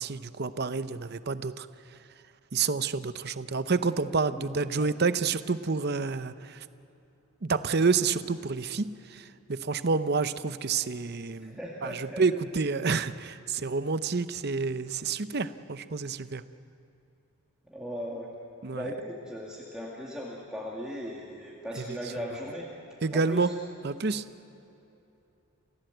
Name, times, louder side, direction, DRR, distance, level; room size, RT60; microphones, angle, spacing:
voice 1, 0.0-1.7 2.5-6.6 7.4-16.4 18.6-18.9 21.7-22.0 23.0-23.5 23.8-24.2, right 4 dB, 50° right, 12 dB, 0.7 m, -29 dB
voice 2, 4.3-5.0 11.4-12.2 17.7-18.3 18.7-22.7 23.1-23.5, equal, 5° right, -5 dB, 2.2 m, -38 dB
29.0 x 16.5 x 7.9 m, 2.9 s
head